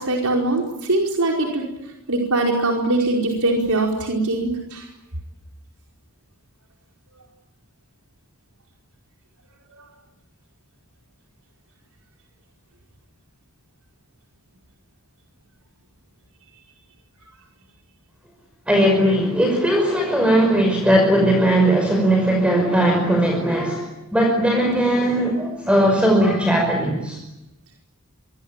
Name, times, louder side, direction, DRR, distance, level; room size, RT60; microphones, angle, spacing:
voice 1, 0.0-1.6 2.1-4.9, right 2 dB, 85° right, 0 dB, 4.9 m, -22 dB
voice 2, 18.7-23.9 24.1-27.2, right 1 dB, 5° right, 2 dB, 5.4 m, -18 dB
27.0 x 24.0 x 9.0 m, 0.93 s
head